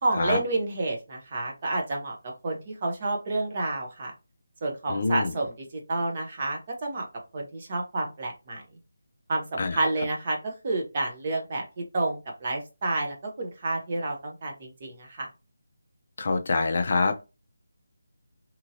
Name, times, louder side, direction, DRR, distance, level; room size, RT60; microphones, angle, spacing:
voice 1, 0.0-4.1 4.6-7.0 7.3-8.6 9.3-15.3, right 2 dB, 25° right, 0.7 m, -30 dB
voice 2, 4.9-5.3 9.6-9.8 16.2-17.2, left 3 dB, 40° left, 0.4 m, -25 dB
2.9 x 2.7 x 2.6 m
figure-of-eight pair, 175°, 0 cm